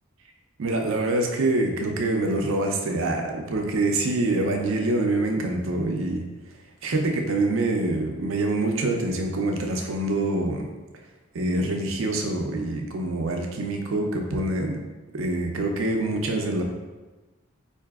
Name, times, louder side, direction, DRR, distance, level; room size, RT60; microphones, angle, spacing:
voice 1, 0.6-6.2 6.8-10.7 11.3-14.9 15.1-16.6, right 2 dB, 75° right, 2 dB, 0.5 m, -25 dB
4.7 x 2.6 x 2.3 m, 1.2 s
head